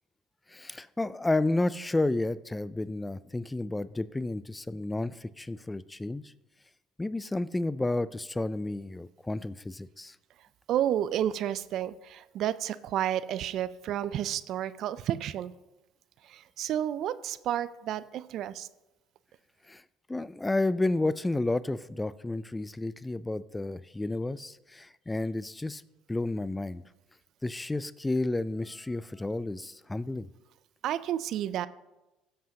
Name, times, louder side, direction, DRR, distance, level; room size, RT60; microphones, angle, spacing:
voice 1, 0.5-6.3 7.0-10.2 19.7-19.8 20.1-25.8 26.1-26.8 27.4-30.3, left 2 dB, 15° left, 18 dB, 0.4 m, -31 dB
voice 2, 10.7-15.5 16.2-18.7 30.8-31.7, right 11 dB, 60° right, 16 dB, 0.4 m, -31 dB
15.5 x 7.5 x 2.8 m, 1.0 s
hypercardioid pair, 70°, 0 cm